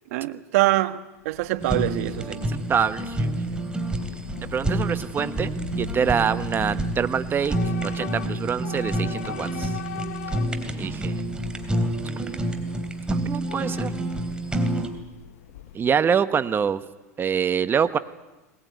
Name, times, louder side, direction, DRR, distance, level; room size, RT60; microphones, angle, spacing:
voice 1, 0.1-2.4, right 17 dB, 65° right, 12 dB, 1.4 m, -24 dB
Train / Subway metro underground, 1.2-16.1, left 12 dB, 75° left, 1.1 m, -40 dB
Fire, 1.6-14.9, right 1 dB, 10° right, 3.0 m, -28 dB
voice 2, 2.5-3.4 4.4-7.6 7.8-9.7 10.8-11.2 13.1-13.9 15.7-16.8 17.2-18.0, right 7 dB, 25° right, 12 dB, 1.2 m, -25 dB
20.5 x 20.0 x 9.4 m, 1.1 s
hypercardioid pair, 100°, 8 cm